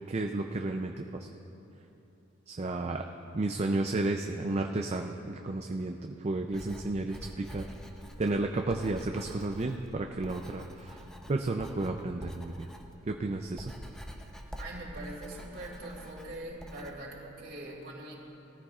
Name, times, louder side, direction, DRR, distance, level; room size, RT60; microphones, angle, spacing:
voice 1, 0.1-1.3 2.5-3.0 3.3-7.7 8.2-11.0 11.3-12.7 13.1-13.6, right 2 dB, 30° right, 3 dB, 0.4 m, -32 dB
Writing, 6.5-16.9, equal, 5° left, 0.7 m, -47 dB
voice 2, 14.6-18.1, right 1 dB, 50° right, -3 dB, 2.5 m, -42 dB
19.5 x 14.0 x 2.4 m, 2.9 s
head